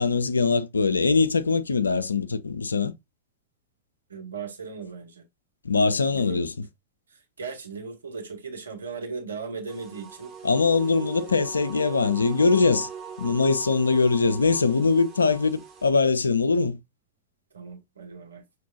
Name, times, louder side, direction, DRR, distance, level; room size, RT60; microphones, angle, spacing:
voice 1, 0.0-2.9 5.6-6.5 10.4-12.9 13.2-16.8, left 4 dB, 75° left, 0.4 m, -22 dB
voice 2, 4.1-5.2 6.1-6.4 7.1-10.3 17.5-18.4, right 5 dB, 70° right, 1.2 m, -37 dB
sound 1, 9.7-15.9, right 7 dB, 20° right, 2.1 m, -41 dB
5.9 x 3.1 x 2.7 m
figure-of-eight pair, 90°, 0 cm